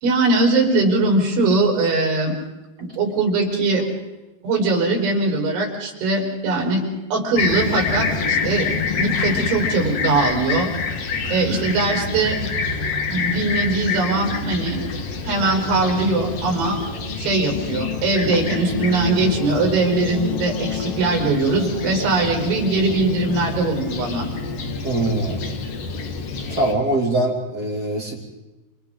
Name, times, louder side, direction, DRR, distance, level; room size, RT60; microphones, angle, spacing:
voice 1, 0.0-2.4 3.0-3.8 4.4-6.8 7.1-8.7 8.9-10.7 11.3-12.4 13.1-14.8 15.2-16.8 17.2-24.3, right 3 dB, 85° right, 0 dB, 7.1 m, -21 dB
Fixed-wing aircraft airplane, 7.4-26.7, left 5 dB, 55° left, 1.7 m, -27 dB
voice 2, 24.8-25.6 26.5-28.1, right 2 dB, 25° right, 0 dB, 2.6 m, -22 dB
29.0 x 28.0 x 3.9 m, 1.1 s
omnidirectional pair, 5.2 m